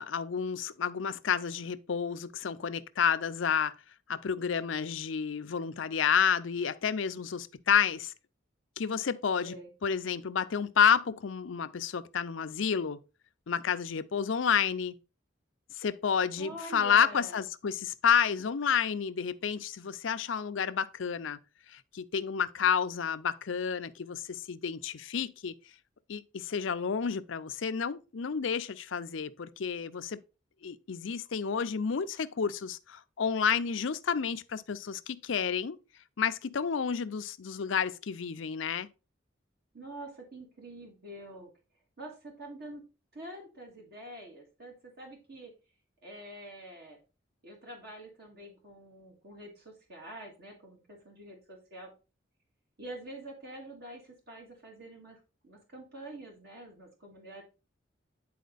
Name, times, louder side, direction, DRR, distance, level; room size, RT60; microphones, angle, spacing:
voice 1, 0.0-3.7 4.1-8.1 8.8-9.6 9.8-13.0 13.5-15.0 15.8-21.4 21.7-25.5 26.1-30.2 30.6-35.8 36.2-38.9, left 7 dB, 80° left, 0.5 m, -30 dB
voice 2, 16.4-17.4 39.7-41.5 42.0-42.8 43.1-45.5 46.0-47.0 47.4-51.9 52.8-57.4, right 1 dB, 55° right, 2.0 m, -46 dB
9.4 x 4.2 x 4.0 m
head